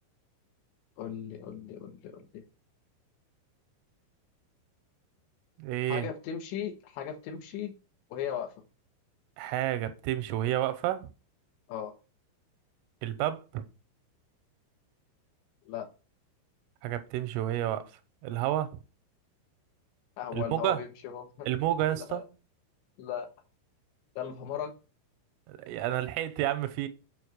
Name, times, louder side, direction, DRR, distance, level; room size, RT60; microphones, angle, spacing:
voice 1, 1.0-2.4 5.9-7.7 8.1-8.5 11.7-12.0 15.7-15.9 20.2-21.5 21.9-22.2 23.0-23.3 24.2-24.7, left 9 dB, 70° left, 3.1 m, -37 dB
voice 2, 5.6-6.1 9.4-11.1 13.0-13.7 16.8-17.8 18.2-18.7 20.3-20.8 21.5-22.3 25.5-26.9, right 13 dB, 85° right, 3.3 m, -30 dB
8.0 x 5.3 x 6.3 m
omnidirectional pair, 5.9 m